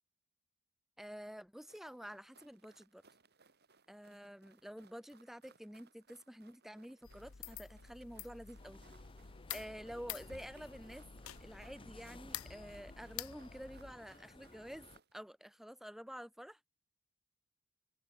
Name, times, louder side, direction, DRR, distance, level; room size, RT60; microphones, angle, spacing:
voice 1, 1.0-3.0 3.9-8.8 9.5-11.1 11.4-16.6, equal, ahead, 0.7 m, -49 dB
sound 1, 1.6-15.1, right 5 dB, 50° right, 3.2 m, -68 dB
sound 2, 7.0-14.0, left 10 dB, 80° left, 1.1 m, -49 dB
sound 3, 8.6-15.0, left 2 dB, 25° left, 1.6 m, -58 dB
head